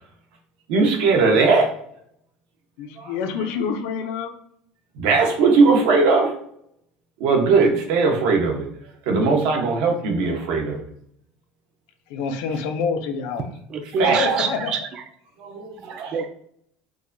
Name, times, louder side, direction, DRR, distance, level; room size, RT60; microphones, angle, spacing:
voice 1, 0.7-1.7 3.0-3.2 5.0-6.3 7.2-8.7 9.1-10.8 14.0-14.2 15.4-16.1, right 4 dB, 70° right, 2 dB, 0.9 m, -19 dB
voice 2, 2.8-4.3 12.1-13.5 14.1-14.7, left 5 dB, 70° left, 6 dB, 0.5 m, -27 dB
voice 3, 13.5-15.0 15.8-16.3, right 5 dB, 30° right, 6 dB, 0.3 m, -25 dB
4.7 x 2.2 x 2.6 m, 0.67 s
cardioid pair, 175°, 2 cm